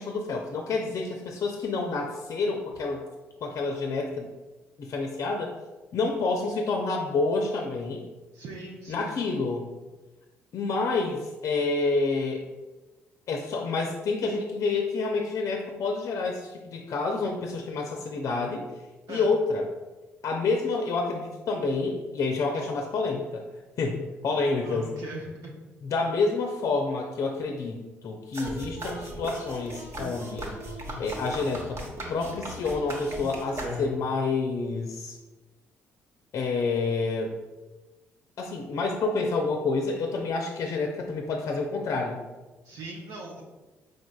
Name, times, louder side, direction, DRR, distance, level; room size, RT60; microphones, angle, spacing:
voice 1, 0.0-3.0 3.4-4.3 4.8-5.5 5.9-8.0 8.9-9.7 10.5-12.4 13.3-18.7 19.1-19.6 20.2-23.5 23.8-24.9 25.8-30.5 31.0-31.8 32.1-35.2 36.3-37.3 38.4-42.2, left 3 dB, 55° left, 2 dB, 0.5 m, -28 dB
voice 2, 8.3-9.2 19.1-19.3 24.6-25.5 42.6-43.4, right 2 dB, 60° right, -2 dB, 0.7 m, -40 dB
sound 1, 28.3-34.2, right 1 dB, 45° right, 1.0 m, -37 dB
5.0 x 3.8 x 2.3 m, 1.2 s
hypercardioid pair, 50°, 7 cm